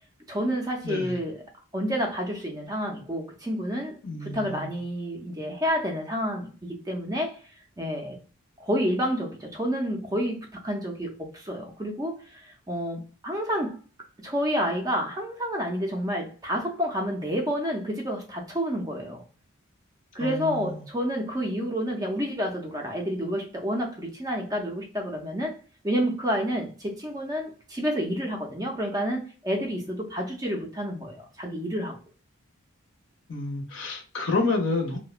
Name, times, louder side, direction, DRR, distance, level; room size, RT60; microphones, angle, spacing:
voice 1, 0.3-1.4 1.7-4.0 4.2-7.4 7.8-8.2 8.6-13.8 14.2-19.2 20.1-25.6 25.8-32.0, equal, 15° right, 0.4 m, -29 dB
voice 2, 0.8-1.2 4.0-4.7 20.2-20.7 33.3-35.0, left 3 dB, 55° left, 0.6 m, -29 dB
2.7 x 2.1 x 2.3 m
head